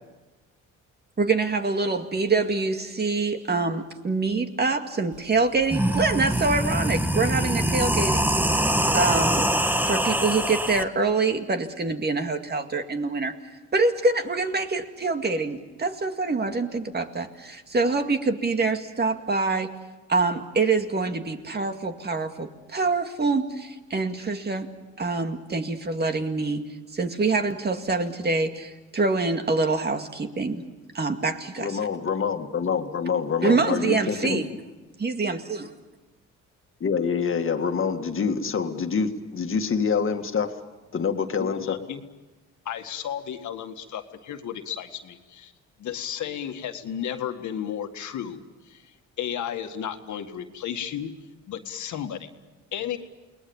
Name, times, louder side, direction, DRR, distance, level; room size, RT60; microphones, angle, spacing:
voice 1, 1.2-8.4 8.9-9.5 9.9-13.4 13.7-19.7 20.1-24.7 25.0-26.6 26.9-31.9 33.4-34.5 35.0-35.6, right 3 dB, 35° right, 6 dB, 2.2 m, -25 dB
sound 1, 5.1-5.2 5.6-10.8, right 1 dB, 5° right, 1.3 m, -24 dB
voice 2, 31.6-34.4 36.8-40.6 40.9-41.8, left 6 dB, 45° left, 6 dB, 2.0 m, -26 dB
voice 3, 41.4-42.0 42.7-45.5 45.8-51.1 51.5-52.3 52.7-53.0, left 9 dB, 70° left, 6 dB, 1.9 m, -33 dB
29.0 x 20.0 x 7.2 m, 1.2 s
cardioid pair, 90°, 30 cm